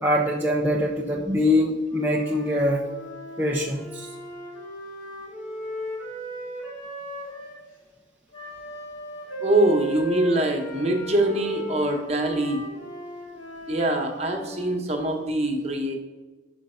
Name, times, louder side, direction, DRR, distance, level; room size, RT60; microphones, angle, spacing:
voice 1, 0.0-2.8 3.4-4.1, left 1 dB, 10° right, -3 dB, 0.5 m, -23 dB
Wind instrument woodwind instrument, 1.9-7.6 8.3-14.8, right 1 dB, 80° left, 2.5 m, -36 dB
voice 2, 9.4-12.6 13.7-15.9, right 1 dB, 35° right, 2 dB, 1.1 m, -24 dB
6.0 x 5.2 x 5.6 m, 1.3 s
head